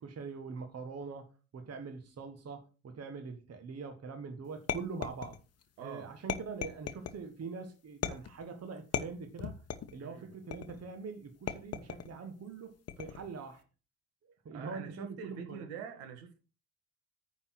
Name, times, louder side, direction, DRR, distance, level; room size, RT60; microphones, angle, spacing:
voice 1, 0.0-5.4 5.8-9.6 9.9-13.6 14.2-15.7, right 4 dB, 35° right, 1.6 m, -43 dB
sound 1, 4.7-5.6 6.3-7.2 8.0-8.5 8.9-10.0 10.5-10.9 11.5-12.1 12.9-13.3, left 9 dB, 35° left, 1.0 m, -37 dB
voice 2, 5.8-6.1 10.0-10.3 14.5-16.4, right 7 dB, 65° right, 2.0 m, -45 dB
9.6 x 4.3 x 6.4 m
figure-of-eight pair, 50°, 45 cm